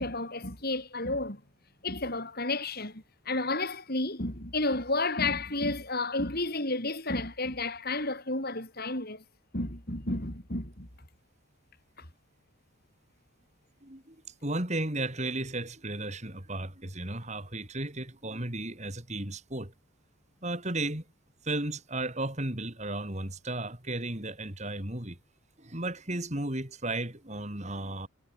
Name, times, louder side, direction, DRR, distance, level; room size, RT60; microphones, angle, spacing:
voice 1, 0.0-1.4 1.8-9.2 9.5-10.9, left 2 dB, 45° left, 6.0 m, -31 dB
voice 2, 13.8-14.1 14.4-19.7 20.4-21.0 21.4-25.2 25.6-28.1, right 2 dB, 30° right, 3.5 m, -34 dB
head